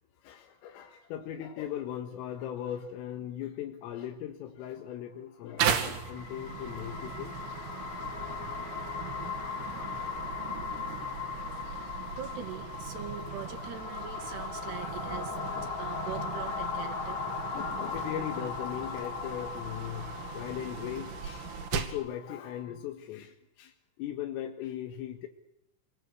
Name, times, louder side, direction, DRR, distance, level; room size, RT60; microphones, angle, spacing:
voice 1, 0.2-7.6 8.3-8.4 14.8-15.0 15.4-15.7 17.5-25.3, left 10 dB, 90° left, 4 dB, 4.2 m, -39 dB
sound 1, 5.5-22.7, left 6 dB, 50° left, 4.3 m, -38 dB
sound 2, 5.6-22.1, right 8 dB, 85° right, 5.1 m, -38 dB
voice 2, 12.2-15.4 15.8-17.3, right 9 dB, 60° right, 7 dB, 3.9 m, -42 dB
28.5 x 20.5 x 8.4 m, 0.86 s
omnidirectional pair, 5.8 m